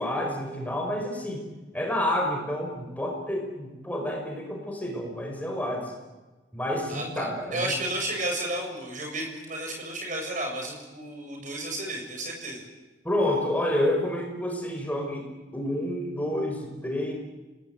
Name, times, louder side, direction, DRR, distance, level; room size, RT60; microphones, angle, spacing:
voice 1, 0.0-1.4 1.7-5.9 6.5-7.7 13.0-15.3 15.5-17.1, left 1 dB, 10° left, 1 dB, 5.3 m, -29 dB
voice 2, 6.9-12.6, right 1 dB, 45° right, 2 dB, 7.4 m, -32 dB
28.0 x 19.0 x 9.3 m, 1.2 s
head